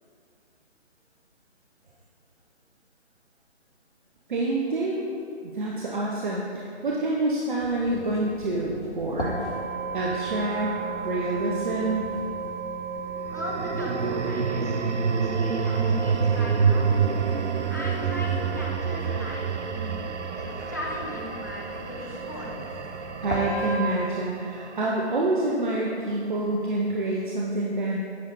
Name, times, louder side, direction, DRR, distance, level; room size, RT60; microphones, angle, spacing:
voice 1, 4.3-5.1 5.5-9.4 9.9-10.7 11.0-12.1 23.2-28.0, right 2 dB, 45° right, -3 dB, 0.8 m, -27 dB
sound 1, 7.6-23.8, right 3 dB, 80° left, 1.7 m, -35 dB
sound 2, 9.1-11.6 13.2-25.5, right 6 dB, 90° right, 0.6 m, -28 dB
voice 2, 13.3-16.8 17.7-20.1 20.4-22.7, equal, 15° left, -4 dB, 0.4 m, -37 dB
Bowed string instrument, 14.9-19.2, right 4 dB, 65° right, 1.3 m, -40 dB
9.3 x 5.0 x 4.2 m, 2.4 s
figure-of-eight pair, 140°, 34 cm